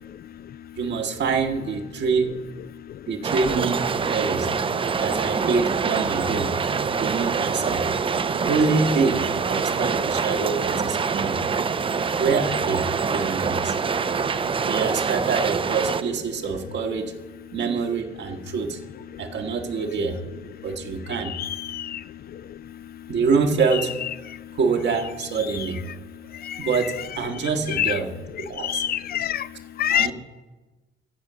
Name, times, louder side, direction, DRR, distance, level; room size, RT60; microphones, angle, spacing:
voice 1, 0.8-2.3 3.1-4.5 5.0-6.5 7.0-7.9 8.5-11.4 12.2-13.7 14.7-17.1 17.5-18.8 19.2-20.2 20.6-21.3 23.1-23.9 24.5-25.8 26.6-28.1 28.5-28.8 29.9-30.1, right 5 dB, 60° right, 5 dB, 1.4 m, -25 dB
sound 1, 3.2-16.0, right 5 dB, 25° right, 0.4 m, -25 dB
voice 2, 21.3-22.0 27.7-28.0 28.6-29.4 29.8-30.1, left 10 dB, 50° left, 17 dB, 0.4 m, -25 dB
15.0 x 5.1 x 6.8 m, 1.2 s
cardioid pair, 90°, 20 cm